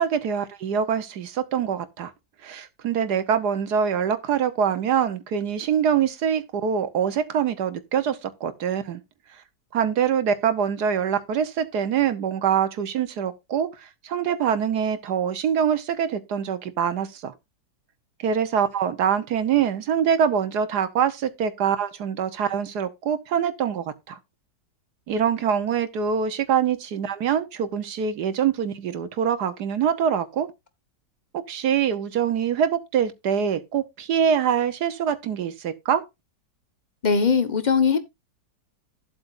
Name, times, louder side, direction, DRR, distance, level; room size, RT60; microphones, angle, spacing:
voice 1, 0.0-2.1 2.4-9.0 9.7-17.3 18.2-24.2 25.1-30.5 31.3-36.0, right 8 dB, 70° right, 1.5 m, -24 dB
voice 2, 37.0-38.0, left 5 dB, 30° left, 1.1 m, -20 dB
13.0 x 8.0 x 2.5 m
omnidirectional pair, 1.8 m